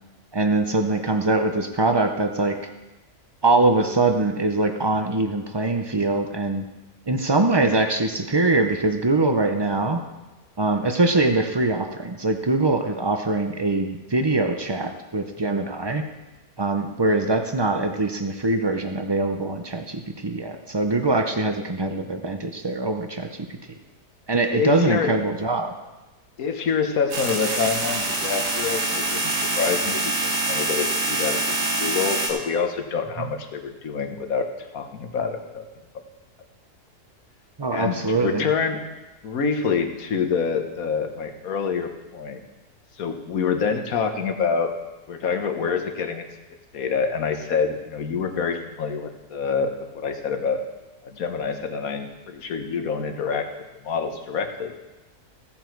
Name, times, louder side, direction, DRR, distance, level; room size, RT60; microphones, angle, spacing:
voice 1, 0.3-2.6 3.4-6.7 7.1-10.0 10.6-16.0 16.6-23.5 24.3-25.7 33.2-33.3 37.6-38.5, right 2 dB, 35° right, 6 dB, 0.4 m, -23 dB
voice 2, 24.5-25.1 26.4-31.4 31.8-34.4 34.7-35.6 37.7-38.8 39.2-42.4 43.0-44.7 45.1-46.2 46.7-50.6 51.0-53.5 53.8-54.7, left 6 dB, 60° left, 6 dB, 1.5 m, -26 dB
sound 1, 27.1-32.3, right 2 dB, 80° right, 2.5 m, -25 dB
16.0 x 7.7 x 4.6 m, 1.1 s
omnidirectional pair, 1.7 m